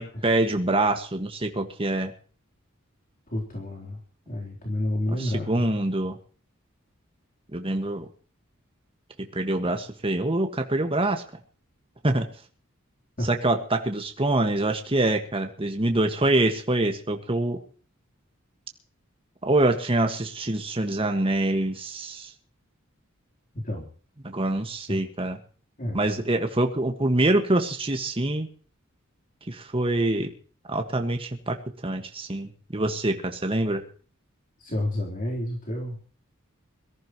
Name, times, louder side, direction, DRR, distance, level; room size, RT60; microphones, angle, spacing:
voice 1, 0.0-2.1 5.2-6.2 7.5-8.0 9.3-11.2 12.0-12.2 13.2-17.6 19.4-22.3 24.2-25.4 25.9-28.5 29.5-30.3 30.7-31.6 31.8-33.8, right 2 dB, 25° right, 5 dB, 1.6 m, -25 dB
voice 2, 3.3-4.0 4.3-5.8 13.2-13.3 23.5-23.9 24.8-25.0 25.8-26.1 34.6-36.0, left 1 dB, 40° left, -1 dB, 3.7 m, -30 dB
23.0 x 14.5 x 3.1 m, 0.41 s
head